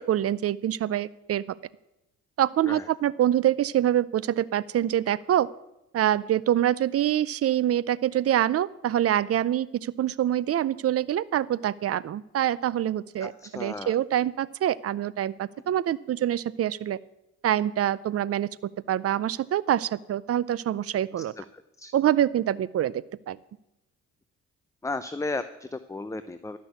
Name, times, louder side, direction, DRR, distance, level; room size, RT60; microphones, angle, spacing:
voice 1, 0.0-1.4 2.4-5.5 5.9-17.0 17.4-18.5 18.9-21.3 21.9-23.4, right 11 dB, 50° right, 18 dB, 0.6 m, -25 dB
voice 2, 13.2-14.0 21.4-21.5 21.8-21.9 24.8-26.6, left 3 dB, 10° left, 12 dB, 0.6 m, -34 dB
12.5 x 6.2 x 9.3 m, 0.88 s
cardioid pair, 90°, 30 cm